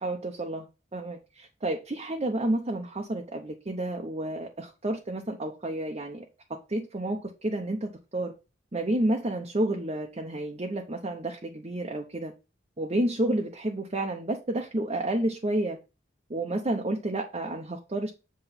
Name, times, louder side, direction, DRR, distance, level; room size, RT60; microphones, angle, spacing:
voice 1, 0.0-0.7 0.9-6.2 6.5-8.3 8.7-12.3 12.8-15.8 16.3-18.1, right 1 dB, 30° right, 0.9 m, -30 dB
7.9 x 3.2 x 5.7 m
head